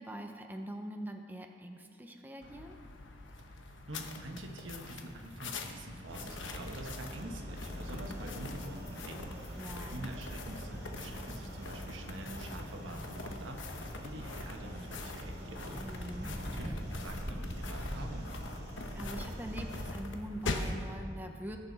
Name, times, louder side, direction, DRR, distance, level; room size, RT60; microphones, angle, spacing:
voice 1, 0.0-2.8 9.6-10.1 15.8-16.3 18.9-21.6, equal, 10° right, 3 dB, 0.6 m, -43 dB
sound 1, 2.4-20.8, left 2 dB, 75° left, 1.0 m, -44 dB
voice 2, 3.9-18.4, right 1 dB, 85° right, 3 dB, 1.3 m, -46 dB
sound 2, 6.1-19.9, equal, 55° right, 1.9 m, -43 dB
19.5 x 6.8 x 4.1 m, 2.5 s
head